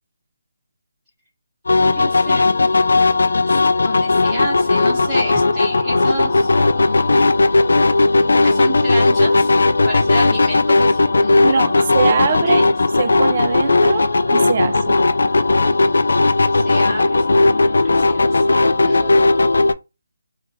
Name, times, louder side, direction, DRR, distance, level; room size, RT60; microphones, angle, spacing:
sound 1, 1.7-19.7, left 3 dB, 75° left, 0.3 m, -16 dB
voice 1, 1.8-2.5 3.5-7.2 8.2-9.5 9.9-12.6 16.5-18.5 18.8-19.3, equal, 10° right, 0.9 m, -30 dB
voice 2, 11.4-15.0, right 5 dB, 30° right, 0.4 m, -22 dB
2.8 x 2.4 x 3.0 m
hypercardioid pair, 170°, 0 cm